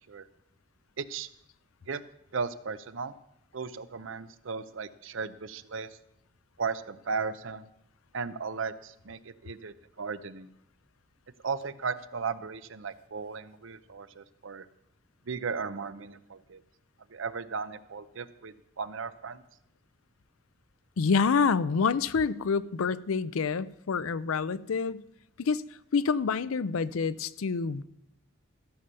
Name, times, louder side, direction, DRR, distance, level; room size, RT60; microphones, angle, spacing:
voice 1, 1.0-1.3 1.9-2.0 2.3-3.1 3.5-6.0 6.6-7.7 8.1-10.5 11.4-14.7 15.3-16.6 17.1-19.4, right 5 dB, 70° right, 0.6 m, -36 dB
voice 2, 21.0-25.0 25.4-25.6 25.9-27.8, left 5 dB, 85° left, 0.5 m, -27 dB
14.0 x 6.9 x 6.7 m
head